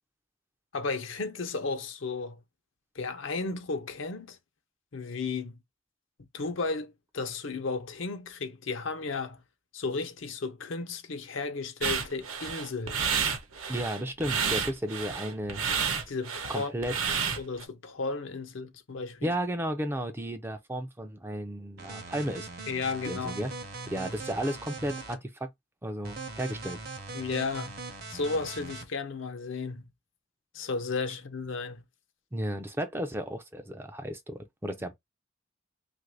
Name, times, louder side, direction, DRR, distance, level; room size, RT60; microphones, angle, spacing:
voice 1, 0.7-2.4 2.9-4.4 4.9-5.5 6.3-9.4 9.7-13.1 16.1-16.7 17.4-19.3 22.7-23.4 27.1-27.7 28.1-29.9 30.5-31.8, left 4 dB, 70° left, 0.7 m, -34 dB
sound 1, 11.8-17.6, right 6 dB, 90° right, 0.9 m, -30 dB
voice 2, 13.7-15.6 16.5-17.0 19.2-22.5 23.1-23.5 23.9-25.5 25.8-26.8 32.3-34.9, equal, 10° right, 0.4 m, -33 dB
sound 2, 21.8-25.1 26.0-28.8, right 3 dB, 50° right, 0.8 m, -40 dB
3.0 x 2.5 x 3.2 m
head